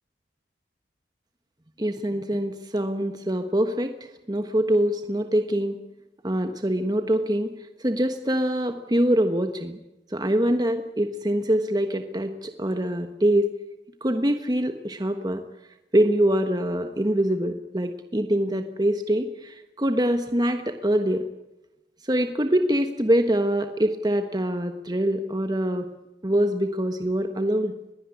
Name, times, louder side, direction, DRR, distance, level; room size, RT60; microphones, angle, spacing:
voice 1, 1.8-5.8 6.2-7.5 7.8-9.8 10.1-13.5 14.0-15.4 15.9-21.3 22.0-25.9 26.2-27.7, right 1 dB, 20° right, 7 dB, 1.2 m, -24 dB
21.5 x 16.5 x 9.9 m, 0.96 s
head